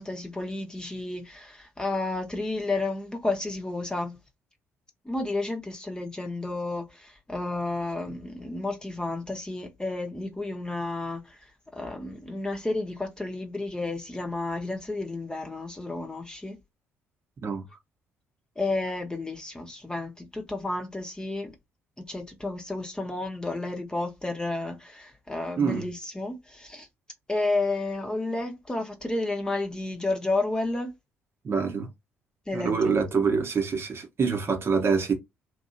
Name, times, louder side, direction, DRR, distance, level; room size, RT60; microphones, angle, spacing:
voice 1, 0.0-4.2 5.0-16.6 18.6-21.5 22.0-26.9 27.3-30.9 32.5-33.3, left 2 dB, 15° left, 1.0 m, -31 dB
voice 2, 31.4-31.9 32.5-35.1, right 5 dB, 40° right, 1.1 m, -25 dB
2.9 x 2.6 x 2.6 m
figure-of-eight pair, 45°, 6 cm